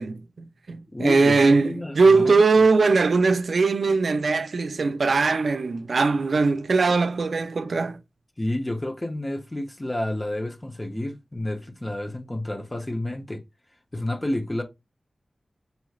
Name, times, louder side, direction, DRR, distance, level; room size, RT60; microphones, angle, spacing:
voice 1, 0.0-8.0, right 4 dB, 75° right, 0.5 m, -20 dB
voice 2, 0.9-2.4 8.4-13.4 13.9-14.6, left 1 dB, 20° left, 0.8 m, -30 dB
5.4 x 3.1 x 2.3 m
wide cardioid pair, 90°, 0 cm